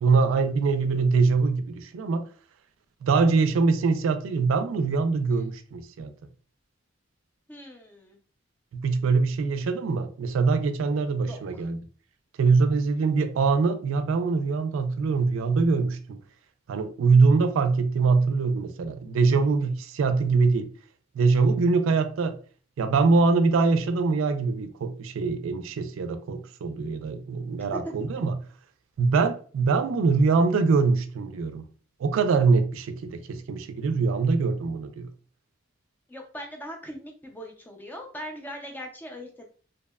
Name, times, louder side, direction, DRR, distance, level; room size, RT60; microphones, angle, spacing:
voice 1, 0.0-2.2 3.0-6.1 8.7-11.8 12.4-16.2 16.7-20.7 21.2-22.4 22.8-28.3 29.0-31.6 32.0-35.1, right 4 dB, 85° right, 0.3 m, -23 dB
voice 2, 7.5-8.2 11.3-11.7 27.7-27.8 36.1-39.4, equal, 10° left, 0.4 m, -40 dB
2.7 x 2.0 x 2.2 m
head